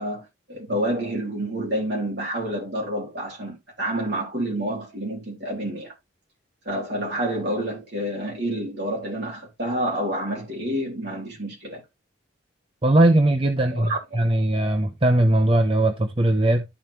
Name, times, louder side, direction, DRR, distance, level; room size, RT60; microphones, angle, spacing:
voice 1, 0.0-5.9 6.6-11.8 13.7-14.0, right 1 dB, 55° right, 3.3 m, -28 dB
voice 2, 12.8-16.6, right 1 dB, 25° right, 0.7 m, -20 dB
12.5 x 4.4 x 3.4 m
head